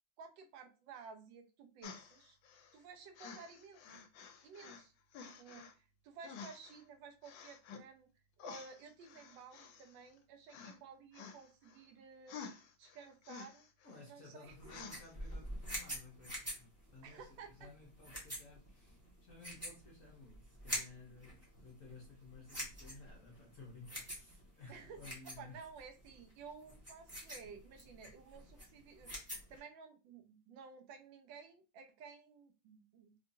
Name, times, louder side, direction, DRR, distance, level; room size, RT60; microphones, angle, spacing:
voice 1, 0.2-2.4 2.7-4.0 4.4-4.9 5.2-8.1 8.4-12.4 12.8-13.7 14.0-14.5 17.0-17.7 24.7-25.0 25.4-29.1 29.5-33.1, right 5 dB, 80° right, 1.3 m, -54 dB
sound 1, 1.8-2.8 3.2-4.9 5.1-5.7 6.2-6.8 7.2-7.8 8.4-10.2 10.5-10.8 11.1-11.8 12.3-14.0 14.7-15.3 15.9-16.0, left 6 dB, 80° left, 1.3 m, -51 dB
voice 2, 13.8-25.7, left 3 dB, 50° left, 1.2 m, -56 dB
sound 2, 14.5-29.6, equal, 10° right, 1.0 m, -47 dB
3.7 x 2.6 x 2.6 m
omnidirectional pair, 2.0 m